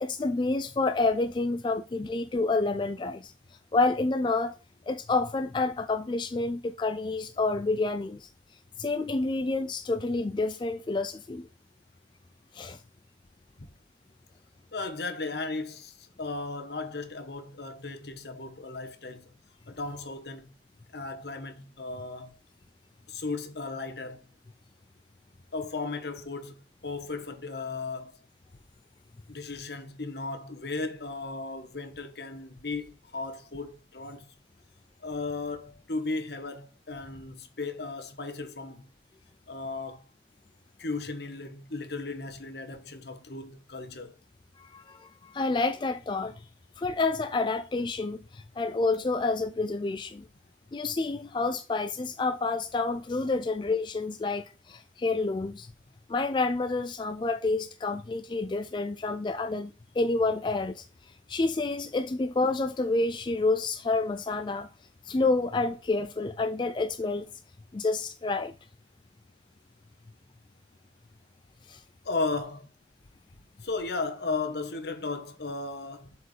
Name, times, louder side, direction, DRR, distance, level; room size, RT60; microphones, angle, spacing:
voice 1, 0.0-3.3 3.7-4.5 4.9-8.3 8.8-11.5 12.5-12.8 44.6-46.5 46.8-50.3 50.7-55.7 56.1-64.7 65.0-67.3 67.7-68.5 71.7-71.8, left 3 dB, 25° left, 0.3 m, -29 dB
voice 2, 14.7-19.3 19.7-20.5 20.9-22.4 23.1-24.2 25.5-28.1 29.3-34.3 35.0-38.9 39.5-40.0 40.8-44.1 72.0-72.7 73.6-76.2, left 3 dB, 60° left, 1.1 m, -35 dB
7.8 x 4.4 x 3.2 m
head